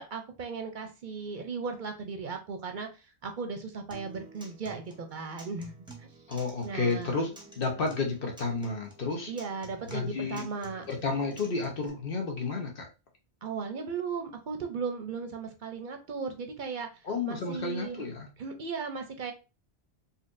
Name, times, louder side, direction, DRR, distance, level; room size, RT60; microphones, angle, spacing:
voice 1, 0.0-5.7 6.0-6.1 6.6-7.2 9.3-10.8 13.4-16.9 17.2-18.0 18.4-19.3, right 5 dB, 55° right, 5 dB, 0.7 m, -36 dB
Acoustic guitar, 3.9-11.9, right 3 dB, 5° right, 0.8 m, -51 dB
voice 2, 6.3-9.3 9.8-10.4 10.9-12.9 17.0-18.3, left 4 dB, 55° left, 1 dB, 1.1 m, -31 dB
4.1 x 2.7 x 2.5 m, 0.30 s
omnidirectional pair, 1.1 m